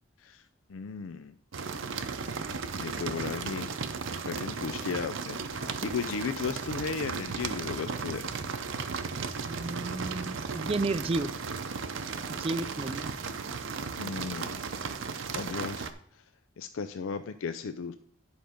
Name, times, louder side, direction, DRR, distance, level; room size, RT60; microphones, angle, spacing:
voice 1, 0.7-1.3 2.7-3.7 4.2-8.3 14.0-14.6 15.3-15.9 16.6-17.9, left 5 dB, 75° left, 10 dB, 0.4 m, -35 dB
sound 1, 1.5-15.9, right 5 dB, 70° right, 0.7 m, -35 dB
voice 2, 9.5-11.3 12.3-13.1, right 2 dB, 30° right, 13 dB, 0.3 m, -32 dB
10.0 x 5.2 x 5.0 m, 0.68 s
head